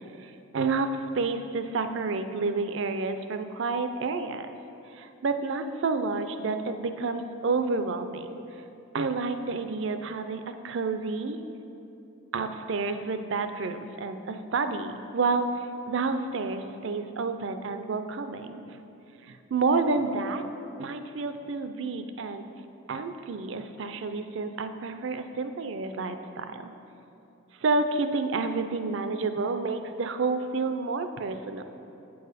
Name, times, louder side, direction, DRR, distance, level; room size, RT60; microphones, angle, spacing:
voice 1, 0.2-4.6 4.9-8.4 8.9-11.4 12.3-18.8 19.3-20.4 20.8-22.4 22.9-26.7 27.6-31.6, right 4 dB, 60° right, 8 dB, 0.4 m, -29 dB
8.4 x 4.7 x 4.9 m, 2.8 s
head